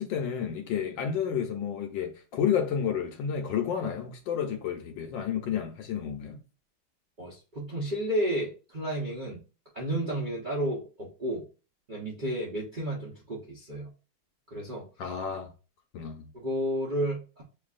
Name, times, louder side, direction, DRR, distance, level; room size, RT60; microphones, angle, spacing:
voice 1, 0.0-6.4 15.0-15.5 15.9-16.3, left 8 dB, 70° left, 1.3 m, -31 dB
voice 2, 7.2-9.4 9.7-11.5 11.9-13.9 14.5-14.9 16.3-17.4, right 1 dB, 45° right, 0.6 m, -32 dB
6.9 x 2.6 x 2.4 m
omnidirectional pair, 2.3 m